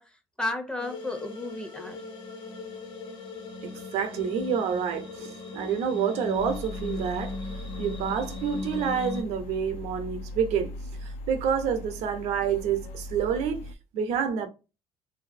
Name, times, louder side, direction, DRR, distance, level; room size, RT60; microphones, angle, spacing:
voice 1, 0.0-2.0, left 2 dB, 10° left, 0.5 m, -34 dB
sound 1, 0.8-9.2, left 4 dB, 45° left, 0.7 m, -38 dB
voice 2, 3.6-7.3 7.8-10.7 11.0-13.6 13.9-14.5, right 7 dB, 75° right, 0.6 m, -28 dB
sound 2, 6.4-13.7, left 1 dB, 80° left, 0.4 m, -39 dB
2.6 x 2.5 x 2.5 m
cardioid pair, 130°, 11 cm